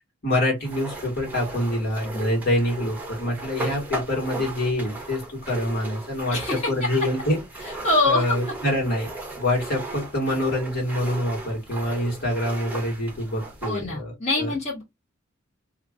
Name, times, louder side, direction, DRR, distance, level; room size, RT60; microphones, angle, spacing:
voice 1, 0.2-7.8 8.0-9.1 9.4-14.1 14.4-14.5, left 1 dB, 50° left, 1.8 m, -26 dB
sound 1, 0.6-13.8, right 2 dB, 10° right, 0.8 m, -36 dB
voice 2, 6.3-6.7 7.6-8.4 13.7-14.8, left 2 dB, 35° left, 1.6 m, -24 dB
2.9 x 2.5 x 3.7 m
head